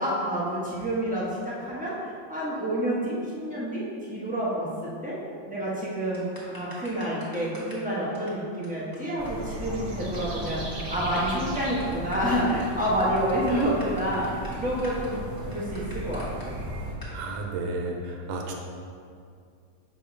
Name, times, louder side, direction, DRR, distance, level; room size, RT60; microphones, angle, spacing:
voice 1, 0.0-5.2 5.5-15.2 15.5-16.5, equal, 15° right, -8 dB, 0.3 m, -28 dB
sound 1, 6.1-7.9 8.1-8.3 8.6-8.7 8.9-9.0 9.3-9.4 9.6-10.2 10.5-10.6 11.0-16.5 17.0-17.1, equal, 15° left, 0.9 m, -46 dB
sound 2, 9.2-16.9, right 1 dB, 45° right, 1.1 m, -36 dB
voice 2, 17.1-18.5, right 2 dB, 85° right, 1 dB, 1.5 m, -32 dB
6.7 x 2.8 x 5.0 m, 2.3 s
omnidirectional pair, 2.1 m